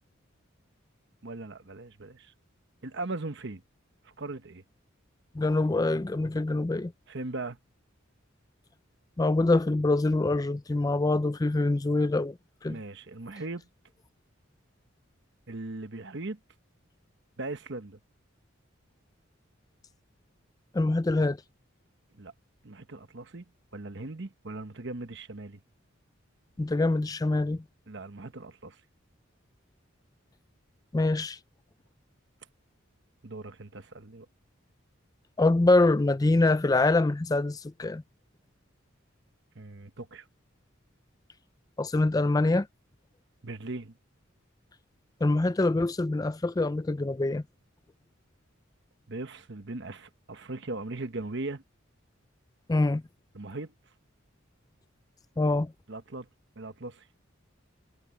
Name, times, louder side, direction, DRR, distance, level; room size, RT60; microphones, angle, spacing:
voice 1, 1.2-2.3 2.8-3.6 4.0-4.6 7.1-7.6 12.7-13.7 15.5-16.4 17.4-18.0 22.1-22.3 22.6-23.4 23.7-25.6 27.9-28.8 33.2-34.3 39.5-40.3 43.4-44.0 49.1-51.6 53.3-53.7 55.9-56.3 56.6-57.1, right 2 dB, 60° right, 1.2 m, -39 dB
voice 2, 5.4-6.9 9.2-12.3 12.6-12.8 20.7-21.4 26.6-27.6 30.9-31.4 35.4-38.0 41.8-42.7 45.2-47.4 52.7-53.0 55.4-55.7, left 2 dB, 20° left, 0.4 m, -25 dB
head